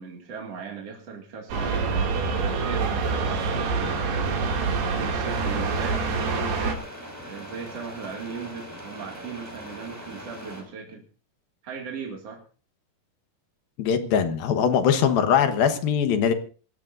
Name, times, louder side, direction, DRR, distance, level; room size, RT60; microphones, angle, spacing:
voice 1, 0.0-4.3 4.9-6.8 7.3-11.0 11.6-12.4, right 5 dB, 45° right, -1 dB, 3.0 m, -38 dB
sound 1, 1.5-6.7, right 4 dB, 85° right, 4.5 m, -26 dB
sound 2, 5.2-10.6, equal, 5° right, 5.6 m, -41 dB
voice 2, 13.8-16.3, left 7 dB, 70° left, 8 dB, 3.0 m, -21 dB
26.0 x 14.5 x 2.6 m, 0.40 s
omnidirectional pair, 4.4 m